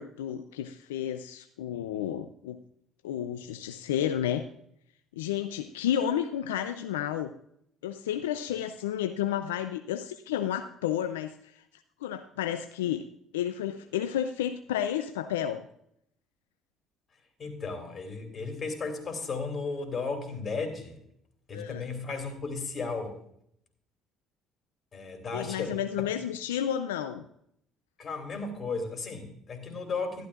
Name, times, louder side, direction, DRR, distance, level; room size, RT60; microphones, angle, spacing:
voice 1, 0.0-2.6 3.0-4.5 5.2-7.3 7.8-11.5 12.0-13.0 13.3-15.6 21.5-21.9 25.3-27.2, left 10 dB, 90° left, 9 dB, 0.4 m, -31 dB
voice 2, 17.4-21.0 21.5-23.1 24.9-25.8 28.0-30.3, left 4 dB, 40° left, 5 dB, 2.9 m, -34 dB
12.5 x 11.5 x 2.4 m, 0.70 s
hypercardioid pair, 65°, 0 cm